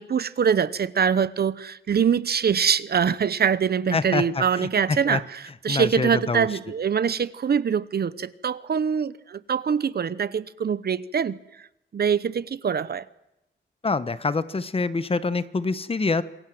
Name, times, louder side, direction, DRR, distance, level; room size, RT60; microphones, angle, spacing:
voice 1, 0.0-11.4 11.9-13.0, right 7 dB, 55° right, 0.9 m, -24 dB
voice 2, 3.9-5.2 5.7-6.5 13.8-16.2, left 3 dB, 30° left, 1.1 m, -26 dB
27.5 x 22.5 x 7.8 m
wide cardioid pair, 180°, 19 cm